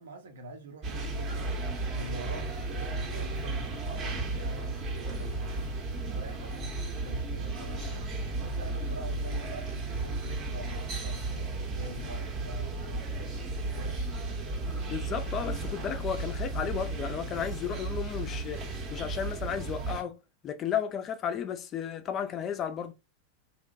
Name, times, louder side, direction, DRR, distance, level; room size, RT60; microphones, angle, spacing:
voice 1, 0.0-1.5 1.9-5.7 6.1-8.1 8.4-13.3 13.7-14.0 17.7-17.8, equal, 65° right, 0.7 m, -45 dB
sound 1, 0.8-20.0, right 2 dB, 35° right, 0.7 m, -34 dB
voice 2, 14.9-18.6 18.9-22.9, left 8 dB, 30° left, 0.4 m, -34 dB
2.8 x 2.1 x 2.5 m
figure-of-eight pair, 90°, 0 cm